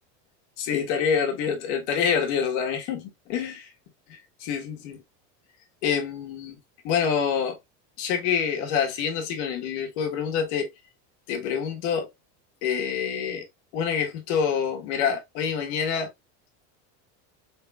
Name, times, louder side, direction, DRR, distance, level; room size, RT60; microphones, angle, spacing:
voice 1, 0.6-3.7 4.1-5.0 5.8-6.6 6.8-7.6 8.0-10.7 11.3-12.1 12.6-13.4 13.7-16.1, left 7 dB, 70° left, 1.5 m, -26 dB
4.7 x 3.8 x 2.4 m
cardioid pair, 175°, 36 cm